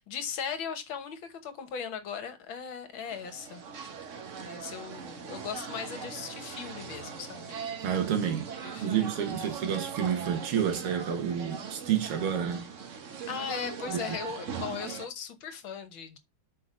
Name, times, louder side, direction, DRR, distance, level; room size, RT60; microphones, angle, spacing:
voice 1, 0.0-3.6 4.5-7.6 8.6-9.0 13.3-16.2, left 7 dB, 65° left, 1.8 m, -38 dB
sound 1, 3.0-15.1, right 6 dB, 45° right, 1.1 m, -40 dB
voice 2, 7.8-8.5 8.8-12.7 13.9-14.2, right 8 dB, 85° right, 2.3 m, -29 dB
6.0 x 5.2 x 4.9 m
omnidirectional pair, 2.4 m